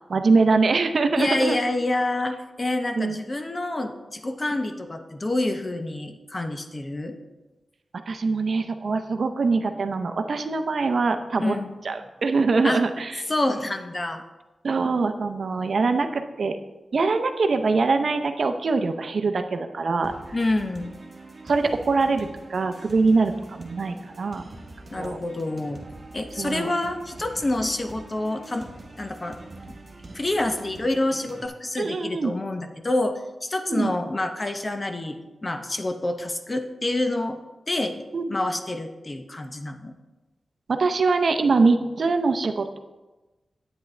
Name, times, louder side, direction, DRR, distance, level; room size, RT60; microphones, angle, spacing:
voice 1, 0.1-1.6 3.0-3.2 8.1-11.5 11.8-13.2 14.6-16.6 16.9-20.1 21.4-24.4 25.0-25.2 26.4-26.7 31.8-32.3 33.7-33.9 38.1-38.3 40.7-42.8, right 4 dB, 55° right, 7 dB, 0.6 m, -23 dB
voice 2, 1.2-7.2 11.4-11.8 12.6-12.8 13.3-14.2 20.3-20.9 24.9-25.8 26.1-28.7 29.0-29.4 29.7-29.8 30.1-37.4 37.7-39.9, left 2 dB, 25° left, 6 dB, 0.7 m, -27 dB
sound 1, 20.0-31.5, right 2 dB, 35° right, 1.1 m, -43 dB
10.5 x 8.8 x 3.2 m, 1.1 s
wide cardioid pair, 155°, 0 cm